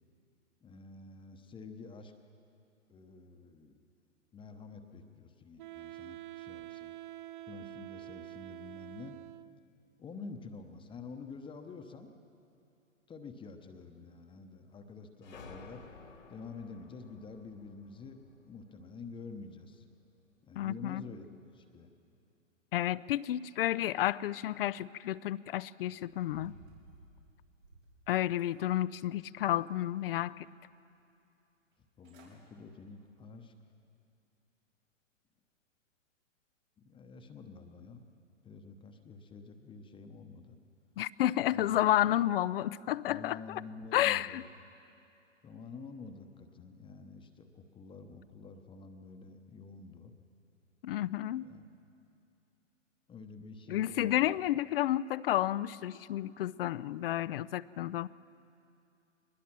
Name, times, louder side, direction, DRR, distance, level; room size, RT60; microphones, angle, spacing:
voice 1, 0.6-2.1 2.9-3.8 4.3-6.9 7.5-9.2 10.0-12.1 13.1-15.8 16.3-19.8 20.4-21.9 32.0-33.5 36.8-38.0 38.4-40.6 41.5-41.8 42.1-42.2 43.1-44.4 45.4-50.1 51.3-51.6 53.1-54.4, left 4 dB, 15° left, 6 dB, 0.9 m, -48 dB
Wind instrument woodwind instrument, 5.6-9.7, right 15 dB, 40° right, 0.6 m, -47 dB
sound 1, 15.2-19.7, left 4 dB, 85° left, 2.6 m, -54 dB
voice 2, 20.6-21.0 22.7-26.5 28.1-30.4 41.0-43.6 43.9-44.4 50.8-51.4 53.7-58.1, left 13 dB, 50° left, 19 dB, 0.5 m, -31 dB
sound 2, 26.0-28.0 28.4-29.2 29.6-30.5 30.9-31.0 31.7-31.8 32.0-32.4 32.8-33.1 33.6-33.7, right 3 dB, 85° right, 6.1 m, -57 dB
22.0 x 20.5 x 6.0 m, 2.6 s
hypercardioid pair, 120°, 38 cm